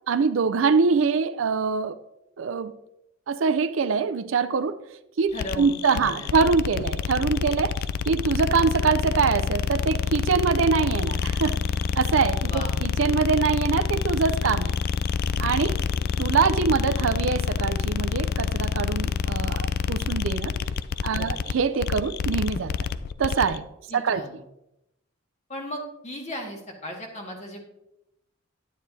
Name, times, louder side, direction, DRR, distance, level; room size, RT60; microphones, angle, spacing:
voice 1, 0.1-2.0 2.4-2.7 3.3-4.7 5.2-11.6 12.0-14.7 15.4-15.8 16.2-20.5 21.0-22.7 23.2-23.6 23.9-24.2, right 5 dB, 75° right, 12 dB, 0.5 m, -24 dB
sound 1, 5.3-23.6, left 6 dB, 50° left, 0.3 m, -27 dB
voice 2, 5.3-6.4 12.5-12.8 21.1-21.4 23.9-24.4 25.5-27.6, equal, 35° left, 1 dB, 1.7 m, -36 dB
9.9 x 9.1 x 2.7 m, 0.86 s
head